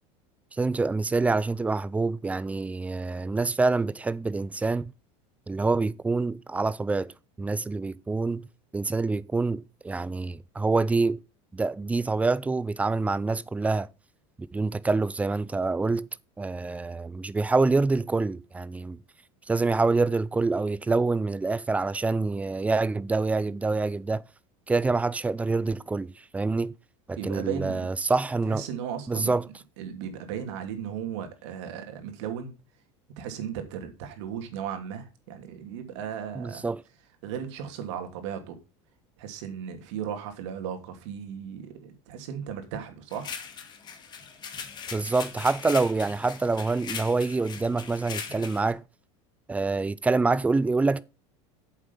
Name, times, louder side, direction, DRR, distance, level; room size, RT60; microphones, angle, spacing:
voice 1, 0.5-4.9 5.5-7.1 7.4-8.5 8.7-11.2 11.5-13.9 14.4-16.1 16.4-19.0 19.5-24.2 24.7-26.7 27.1-28.6 29.1-29.5 36.4-36.8 44.9-48.8 49.5-51.0, right 3 dB, 10° right, 0.5 m, -26 dB
voice 2, 27.2-27.9 28.4-29.3 29.8-32.5 33.2-36.6 37.2-38.6 39.2-43.4, right 8 dB, 75° right, 2.9 m, -36 dB
sound 1, 43.1-48.7, left 6 dB, 30° left, 2.1 m, -39 dB
8.7 x 7.3 x 5.4 m
supercardioid pair, 140°, 15 cm